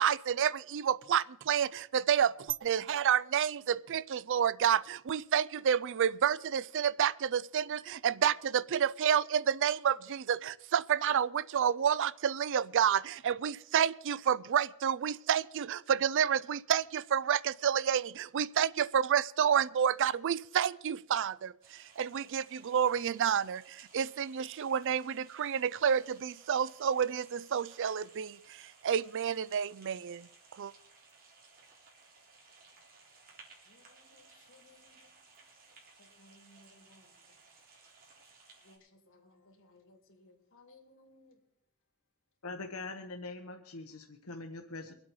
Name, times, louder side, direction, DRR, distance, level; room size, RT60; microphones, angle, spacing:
voice 1, 0.0-30.3 30.6-30.7, right 8 dB, 60° right, 0.4 m, -29 dB
sound 1, 21.6-38.8, right 4 dB, 45° right, 3.9 m, -60 dB
voice 2, 33.6-37.4 38.6-41.4, left 2 dB, 60° left, 3.6 m, -63 dB
voice 3, 42.4-44.9, left 3 dB, 80° left, 1.3 m, -43 dB
24.0 x 8.4 x 4.7 m
head